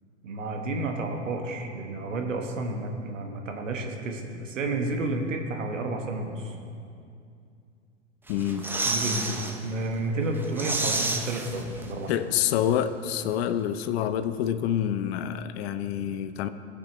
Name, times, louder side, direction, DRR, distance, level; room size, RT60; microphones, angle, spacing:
voice 1, 0.2-6.6 8.8-12.1, right 2 dB, 80° right, 3 dB, 1.2 m, -31 dB
voice 2, 8.3-8.7 12.1-16.5, left 10 dB, 55° left, 11 dB, 0.6 m, -27 dB
sound 1, 8.3-9.6 9.9-10.0 10.3-12.1 12.4-12.5, right 2 dB, 5° right, 0.5 m, -30 dB
16.5 x 6.1 x 3.0 m, 2.5 s
hypercardioid pair, 100°, 37 cm